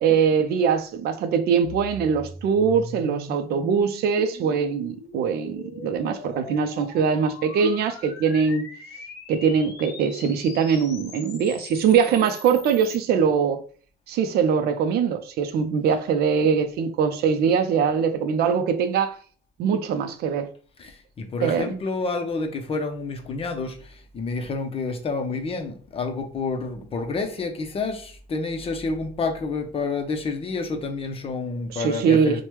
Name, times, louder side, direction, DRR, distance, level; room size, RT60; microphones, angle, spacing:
voice 1, 0.0-8.7 9.3-13.6 14.1-19.2 19.6-20.5 21.4-21.7 31.7-32.4, right 6 dB, 70° right, 0.5 m, -22 dB
sound 1, 1.6-13.0, left 3 dB, 75° left, 0.8 m, -41 dB
voice 2, 20.8-32.4, left 3 dB, 35° left, 0.6 m, -29 dB
3.2 x 2.2 x 3.0 m
cardioid pair, 110°, 17 cm